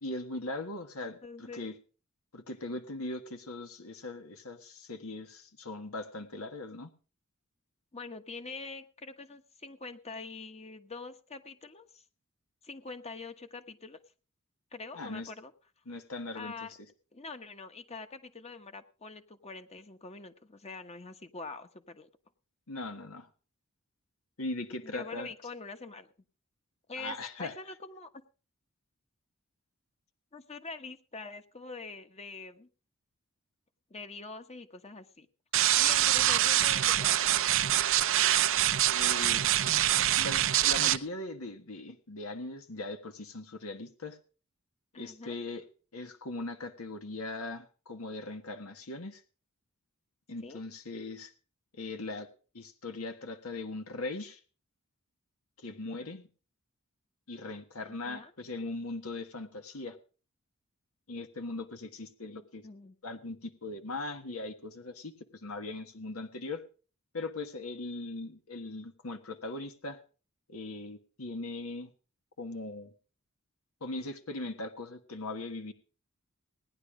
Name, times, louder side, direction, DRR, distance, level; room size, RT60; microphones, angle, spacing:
voice 1, 0.0-1.7 2.3-6.9 14.9-15.3 15.9-16.7 22.7-23.3 24.4-25.3 27.0-27.5 38.9-44.2 45.0-45.6 45.9-49.2 50.3-51.3 51.7-52.3 52.5-54.4 55.6-56.3 57.3-60.0 61.1-62.7 63.0-65.1 65.4-66.6 67.1-70.0 70.5-71.9 72.4-72.9 73.8-75.7, left 2 dB, 80° left, 7 dB, 1.5 m, -40 dB
voice 2, 1.0-1.7 7.9-12.0 12.6-14.0 14.7-15.5 16.3-16.7 17.1-22.1 24.8-26.1 26.9-28.1 30.3-32.7 33.9-35.3 35.8-37.7 44.9-45.4 50.4-50.6 57.9-58.3 62.6-63.0, left 3 dB, 30° left, 8 dB, 1.2 m, -44 dB
sound 1, 35.5-41.0, right 12 dB, 65° right, 0.7 m, -25 dB
18.0 x 10.5 x 4.9 m, 0.39 s
head